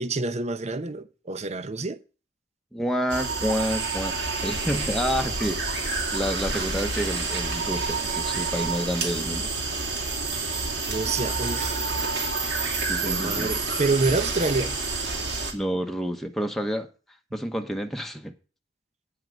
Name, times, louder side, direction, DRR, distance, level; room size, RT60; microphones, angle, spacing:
voice 1, 0.0-2.0 10.9-11.8 13.0-14.7, right 3 dB, 35° right, 0.7 m, -27 dB
voice 2, 2.7-9.5 12.9-13.5 15.5-16.9 17.3-18.3, equal, ahead, 1.0 m, -29 dB
sound 1, 3.1-15.5, right 3 dB, 65° right, 2.7 m, -28 dB
9.1 x 5.8 x 7.6 m
head